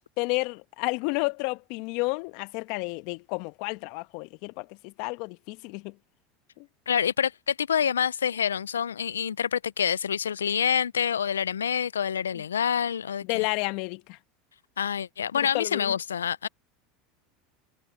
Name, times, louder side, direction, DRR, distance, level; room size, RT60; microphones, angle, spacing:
voice 1, 0.2-5.9 6.6-6.7 13.3-14.2 15.5-15.9, left 27 dB, 60° left, 1.4 m, -31 dB
voice 2, 6.9-13.5 14.8-16.5, left 8 dB, 85° left, 0.5 m, -27 dB
hypercardioid pair, 80°, 0 cm